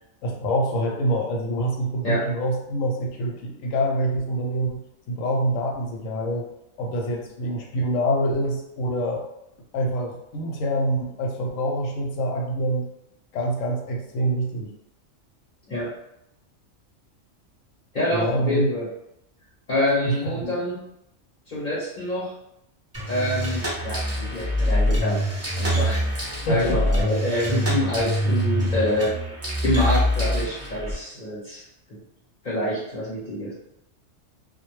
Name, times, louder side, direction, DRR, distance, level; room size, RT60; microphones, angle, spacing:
voice 1, 0.2-4.8 5.1-6.5 6.8-9.3 9.7-12.9 13.3-14.7 18.1-18.7 20.0-20.6 26.5-26.8, right 1 dB, 85° left, 1 dB, 1.0 m, -26 dB
voice 2, 17.9-18.9 19.7-20.7 21.5-22.3 23.1-25.2 25.6-29.1 29.6-31.6 31.9-32.0 32.4-33.5, left 1 dB, 40° left, -8 dB, 0.8 m, -26 dB
sound 1, 22.9-30.9, equal, 20° right, 0.4 m, -25 dB
2.2 x 2.1 x 3.0 m, 0.83 s
omnidirectional pair, 1.3 m